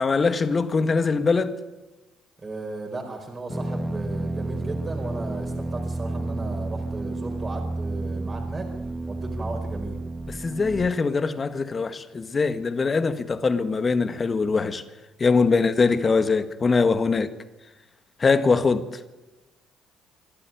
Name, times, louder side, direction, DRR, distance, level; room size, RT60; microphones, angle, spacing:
voice 1, 0.0-1.6 10.3-14.8 15.2-17.3 18.2-18.9, left 4 dB, 35° left, 1.7 m, -22 dB
voice 2, 2.4-8.7 9.1-10.0 15.5-15.7, right 2 dB, 30° right, 4.6 m, -36 dB
sound 1, 3.5-10.9, right 2 dB, 10° right, 1.8 m, -31 dB
25.0 x 12.5 x 9.2 m
supercardioid pair, 65°, 0 cm